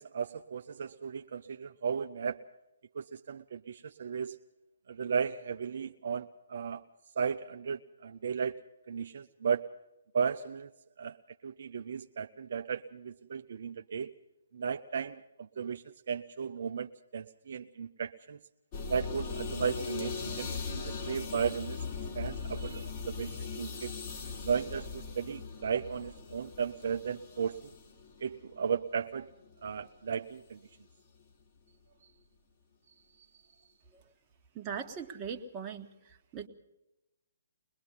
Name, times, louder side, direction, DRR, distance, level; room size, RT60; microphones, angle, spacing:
voice 1, 0.0-2.4 2.9-4.4 4.9-6.8 7.2-8.6 8.9-9.7 10.1-10.7 11.0-11.2 11.4-14.1 14.5-18.4 18.9-21.9 22.1-23.9 24.4-27.7 28.2-29.3 29.6-30.6, right 6 dB, 60° right, 6 dB, 0.6 m, -35 dB
sound 1, 18.7-29.8 30.1-30.4, left 5 dB, 40° left, 3.5 m, -40 dB
voice 2, 34.5-36.5, right 7 dB, 25° right, 2 dB, 1.5 m, -40 dB
22.0 x 21.0 x 5.6 m, 0.93 s
figure-of-eight pair, 135°, 0 cm